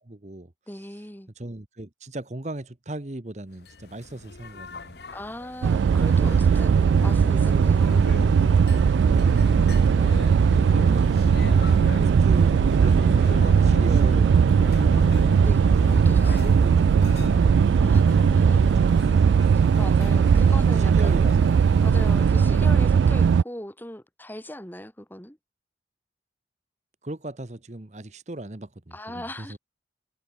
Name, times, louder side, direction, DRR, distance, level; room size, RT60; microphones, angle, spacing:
voice 1, 0.0-0.5 1.4-5.0 9.0-10.3 10.7-15.5 16.2-17.4 18.5-19.2 20.7-21.6 27.0-29.6, right 1 dB, 40° right, 1.1 m, -38 dB
voice 2, 0.7-1.3 5.1-8.1 14.8-16.7 17.8-18.0 18.3-18.6 19.8-21.4 21.8-25.4 28.9-29.6, left 1 dB, 10° left, 2.6 m, -39 dB
sound 1, 3.6-22.8, left 2 dB, 65° left, 1.0 m, -36 dB
sound 2, 5.6-23.4, right 6 dB, 80° right, 0.3 m, -19 dB
head